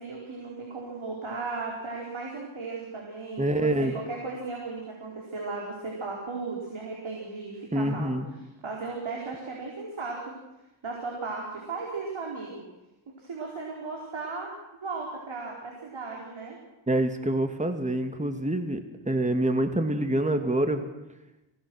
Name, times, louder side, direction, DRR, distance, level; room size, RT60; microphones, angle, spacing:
voice 1, 0.0-8.1 8.6-10.4 10.8-12.6 13.1-14.5 14.8-16.6, right 3 dB, 75° right, -2 dB, 4.8 m, -36 dB
voice 2, 3.4-3.9 7.7-8.3 16.9-20.8, right 1 dB, 15° right, 6 dB, 2.1 m, -26 dB
27.5 x 18.5 x 6.4 m, 0.96 s
cardioid pair, 75°, 48 cm